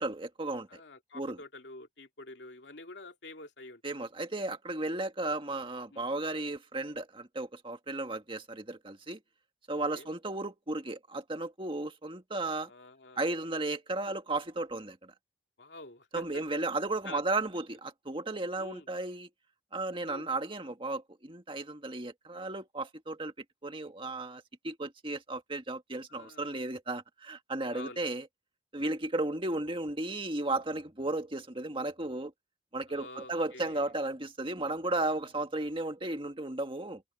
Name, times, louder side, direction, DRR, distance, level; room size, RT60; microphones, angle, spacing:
voice 1, 0.0-0.7 1.1-1.4 3.8-9.2 9.7-12.7 13.2-15.1 16.1-19.3 19.7-23.3 23.6-28.3 28.7-32.3 32.7-37.0, right 2 dB, 30° right, 1.8 m, -34 dB
voice 2, 0.7-3.8 5.9-6.1 9.7-10.1 12.6-13.3 15.6-16.6 17.0-17.2 18.6-18.9 20.1-20.3 26.1-26.6 27.7-28.0 32.9-33.9, left 2 dB, 80° left, 2.6 m, -48 dB
head